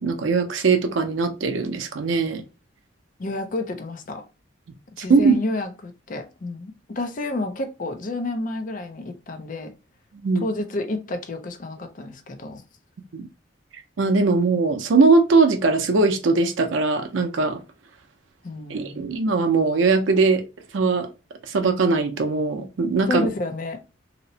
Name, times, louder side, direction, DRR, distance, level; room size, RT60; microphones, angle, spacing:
voice 1, 0.0-2.4 5.1-5.4 10.2-10.4 13.1-13.3 14.0-17.6 18.7-20.4 20.7-21.1 21.5-23.3, right 4 dB, 85° right, 0.5 m, -20 dB
voice 2, 3.2-4.2 5.0-9.7 10.4-12.6 18.4-19.1 23.1-23.8, left 2 dB, 45° left, 0.5 m, -30 dB
2.8 x 2.0 x 2.7 m
head